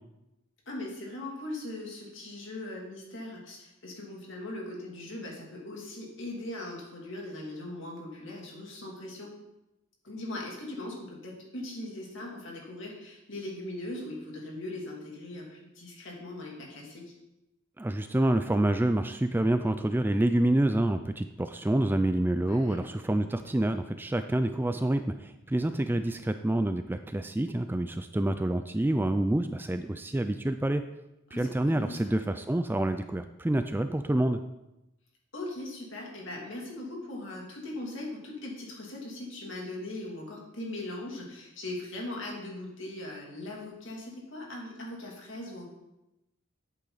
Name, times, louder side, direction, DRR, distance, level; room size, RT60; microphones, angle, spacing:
voice 1, 0.7-9.3 10.0-17.1 22.4-22.8 31.3-32.2 35.3-45.7, left 1 dB, 60° left, -2 dB, 2.7 m, -40 dB
voice 2, 17.8-30.8 31.3-34.4, right 1 dB, 10° right, 9 dB, 0.3 m, -27 dB
10.0 x 8.3 x 4.0 m, 0.93 s
head